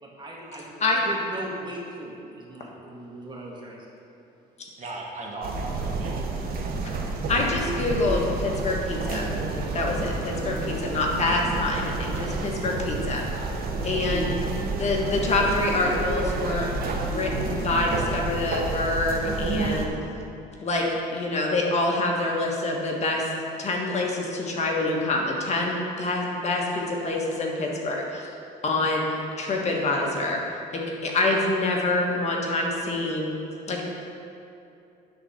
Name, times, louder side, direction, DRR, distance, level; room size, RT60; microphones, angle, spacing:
voice 1, 0.0-4.0, right 1 dB, 25° right, -3 dB, 1.9 m, -39 dB
voice 2, 4.8-6.8, right 2 dB, 45° right, -1 dB, 1.4 m, -38 dB
sound 1, 5.4-19.9, right 3 dB, 60° right, 1.1 m, -30 dB
voice 3, 7.3-13.2 13.8-14.3 14.8-19.9 20.6-20.8 21.1-23.2 23.6-28.3 28.6-29.1 29.4-30.4 31.0-33.3 33.7-33.8, left 2 dB, 40° left, -1 dB, 1.4 m, -26 dB
10.0 x 4.1 x 6.5 m, 2.7 s
cardioid pair, 110°, 17 cm